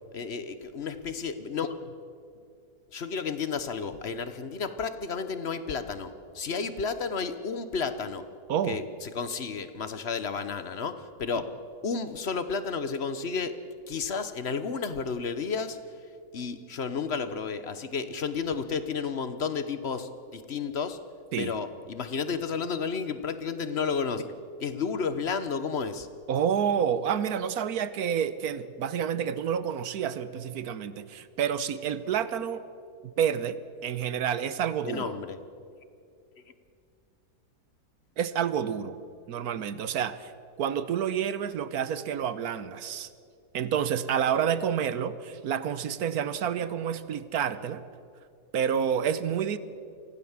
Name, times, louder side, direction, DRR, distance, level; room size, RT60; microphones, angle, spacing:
voice 1, 0.1-1.8 2.9-8.2 8.7-11.5 11.8-13.6 13.9-15.8 16.3-21.0 21.4-24.3 24.6-26.1 34.8-35.4, left 5 dB, 45° left, 11 dB, 1.2 m, -32 dB
voice 2, 26.3-32.6 33.0-35.1 38.2-39.0 39.3-40.3 40.6-43.1 43.5-47.8 48.5-49.6, right 8 dB, 70° right, 14 dB, 1.3 m, -29 dB
24.5 x 16.0 x 7.3 m, 2.4 s
omnidirectional pair, 1.7 m